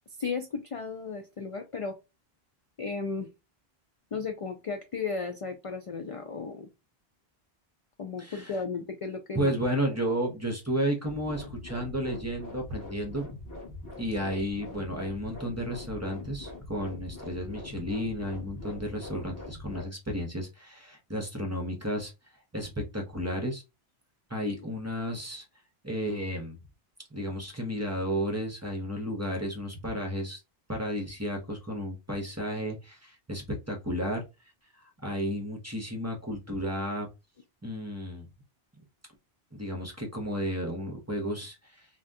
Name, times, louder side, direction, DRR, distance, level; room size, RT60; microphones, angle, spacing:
voice 1, 0.2-2.0 2.8-3.3 4.1-6.7 8.0-9.5, left 4 dB, 55° left, 5 dB, 0.3 m, -34 dB
voice 2, 8.2-8.6 9.3-13.3 14.0-22.1 22.5-23.6 24.3-25.4 25.8-26.6 27.1-30.4 30.7-34.2 35.0-37.1 37.6-38.3 39.5-41.9, equal, 20° right, 0 dB, 0.7 m, -32 dB
sound 1, 11.0-19.8, left 2 dB, 20° left, 1.3 m, -43 dB
3.5 x 2.2 x 2.6 m, 0.25 s
omnidirectional pair, 1.0 m